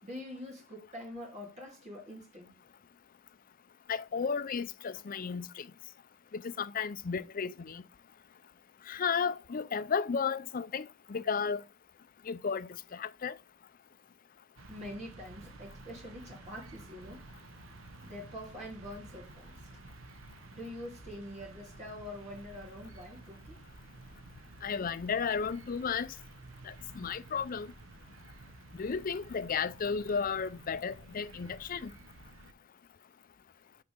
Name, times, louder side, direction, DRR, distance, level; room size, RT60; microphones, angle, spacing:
voice 1, 0.0-2.5 14.7-17.3 18.0-19.7 20.5-23.6, left 1 dB, 35° right, 2.8 m, -45 dB
voice 2, 3.9-5.7 6.3-7.8 8.9-11.6 12.3-13.4 24.6-26.1 26.7-27.7 28.8-31.9, left 6 dB, 45° left, 0.5 m, -33 dB
sound 1, 14.6-32.5, right 2 dB, 75° right, 1.0 m, -52 dB
5.9 x 4.7 x 6.2 m
head